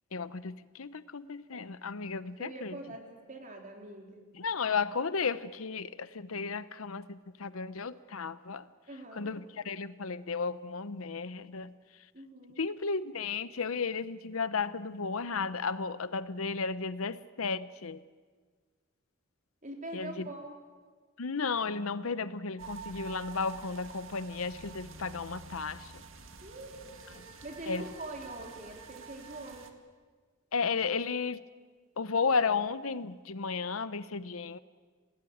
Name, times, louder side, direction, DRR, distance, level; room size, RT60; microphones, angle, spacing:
voice 1, 0.1-2.8 4.4-8.7 9.1-11.7 12.6-18.0 19.9-20.3 21.2-26.0 27.7-27.9 30.5-31.4 32.0-34.6, left 5 dB, 85° left, 14 dB, 0.9 m, -34 dB
voice 2, 2.4-4.2 8.9-9.3 12.1-12.6 19.6-20.6 26.4-29.7, right 1 dB, 40° right, 1 dB, 4.0 m, -44 dB
sound 1, 22.6-29.7, right 5 dB, 70° right, 2.1 m, -48 dB
28.0 x 18.5 x 8.7 m, 1.5 s
head